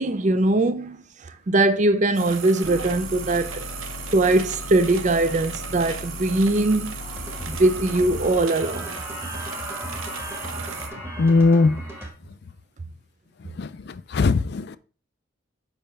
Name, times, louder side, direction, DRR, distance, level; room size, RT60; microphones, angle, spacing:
voice 1, 0.0-3.7 4.1-7.0 7.5-9.0, right 2 dB, 35° right, 0.4 m, -21 dB
sound 1, 2.1-10.9, right 6 dB, 80° right, 0.8 m, -36 dB
sound 2, 2.6-8.3, left 3 dB, 75° left, 0.7 m, -38 dB
sound 3, 7.0-12.1, equal, 10° right, 1.2 m, -35 dB
voice 2, 11.2-11.8 13.6-14.8, left 3 dB, 55° left, 0.4 m, -20 dB
7.1 x 5.5 x 3.4 m
head